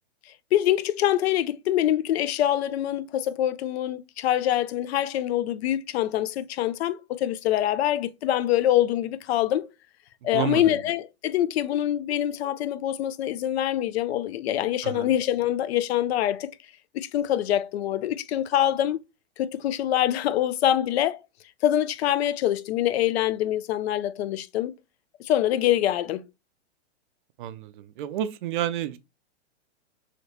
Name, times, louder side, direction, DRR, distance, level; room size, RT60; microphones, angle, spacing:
voice 1, 0.5-9.7 10.2-16.5 16.9-19.0 19.4-21.2 21.6-24.7 25.2-26.2, left 12 dB, 60° left, 0.5 m, -25 dB
voice 2, 10.3-10.8 14.8-15.1 27.4-29.0, right 12 dB, 45° right, 0.4 m, -30 dB
3.3 x 2.8 x 2.7 m
hypercardioid pair, 145°, 35 cm